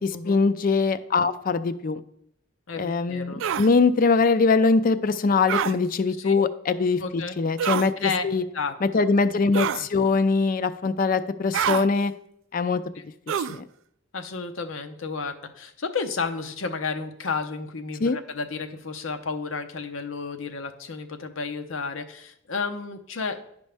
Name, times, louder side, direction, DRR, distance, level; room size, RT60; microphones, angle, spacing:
voice 1, 0.0-2.0 2.8-8.4 8.8-12.1 12.5-12.8 13.4-13.6 18.0-18.2, left 4 dB, 45° left, 13 dB, 0.4 m, -22 dB
voice 2, 2.7-3.4 6.2-6.4 7.0-7.4 8.0-8.2 8.5-9.1 13.0-13.1 14.1-23.4, left 4 dB, 85° left, 7 dB, 0.8 m, -32 dB
sound 1, 3.4-3.7 5.5-5.7 7.6-7.9 9.5-9.9 11.5-11.9 13.3-13.6, right 8 dB, 75° right, 0.3 m, -26 dB
10.5 x 5.3 x 3.4 m, 0.74 s
head